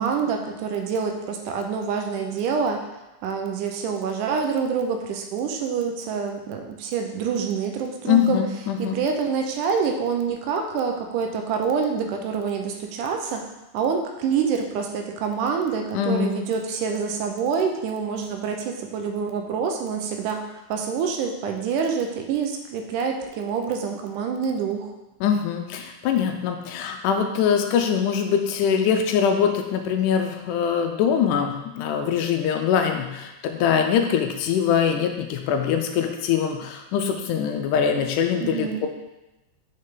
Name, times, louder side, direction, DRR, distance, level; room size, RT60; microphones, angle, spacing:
voice 1, 0.0-2.8 3.2-8.4 8.8-13.5 13.7-20.4 20.7-24.9 38.4-38.8, right 6 dB, 85° right, 4 dB, 2.2 m, -26 dB
voice 2, 8.1-9.0 15.9-16.3 25.2-38.9, left 7 dB, 85° left, 4 dB, 2.1 m, -23 dB
6.6 x 5.8 x 3.7 m, 1.0 s
omnidirectional pair, 3.7 m